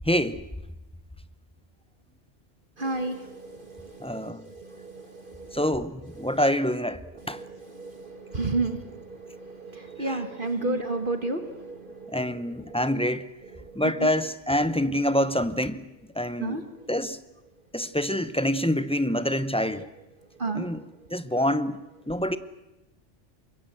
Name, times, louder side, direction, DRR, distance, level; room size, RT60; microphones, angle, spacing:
voice 1, 0.0-0.4 4.0-4.4 5.5-7.4 10.0-10.2 10.6-10.8 12.1-13.3 13.7-15.9 16.1-16.6 16.9-17.2 17.7-19.9 20.5-20.8 21.1-22.4, left 1 dB, 5° left, 0.7 m, -26 dB
voice 2, 2.8-5.7 6.2-6.4 7.1-12.8 13.5-14.1 16.4-16.9 20.3-20.9, right 3 dB, 45° right, 1.8 m, -33 dB
25.0 x 22.0 x 7.8 m
omnidirectional pair, 1.3 m